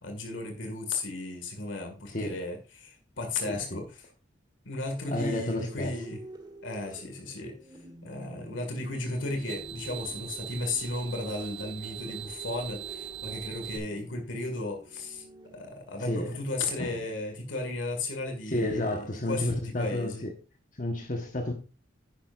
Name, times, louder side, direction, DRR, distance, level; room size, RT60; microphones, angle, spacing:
voice 1, 0.0-4.0 4.6-6.2 6.6-7.6 8.0-15.2 15.5-20.2, left 2 dB, 85° left, 2.0 m, -35 dB
voice 2, 3.5-3.8 5.1-5.9 16.0-16.4 16.8-17.0 18.5-20.3 20.8-21.5, left 1 dB, 45° left, 1.2 m, -31 dB
sound 1, 4.8-18.5, right 1 dB, 20° right, 1.3 m, -50 dB
sound 2, 9.0-13.8, right 8 dB, 85° right, 2.6 m, -41 dB
10.5 x 10.0 x 2.5 m
head